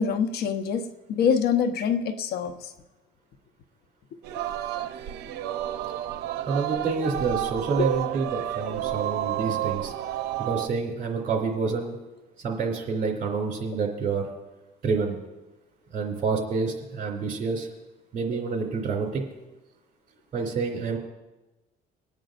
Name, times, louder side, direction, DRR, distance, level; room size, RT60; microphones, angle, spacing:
voice 1, 0.0-2.7, left 7 dB, 70° left, 7 dB, 0.9 m, -25 dB
Singing, 4.2-10.7, right 13 dB, 80° right, 0.6 m, -31 dB
voice 2, 6.5-9.9 10.4-11.9 12.4-14.3 14.8-15.2 15.9-17.7 18.1-19.2 20.3-21.0, right 4 dB, 50° right, 0 dB, 2.8 m, -28 dB
25.0 x 9.0 x 2.5 m, 1.1 s
cardioid pair, 110°, 17 cm